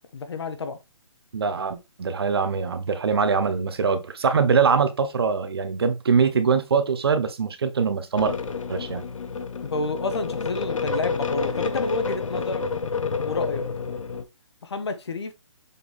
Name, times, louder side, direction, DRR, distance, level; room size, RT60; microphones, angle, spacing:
voice 1, 0.1-0.8 9.6-12.6 13.2-13.6 14.6-15.3, left 3 dB, 55° left, 1.3 m, -29 dB
voice 2, 1.3-8.4 8.7-9.0, right 5 dB, 50° right, 1.0 m, -23 dB
sound 1, 8.2-14.2, left 4 dB, 90° left, 1.1 m, -29 dB
7.0 x 4.0 x 3.5 m
hypercardioid pair, 175°, 16 cm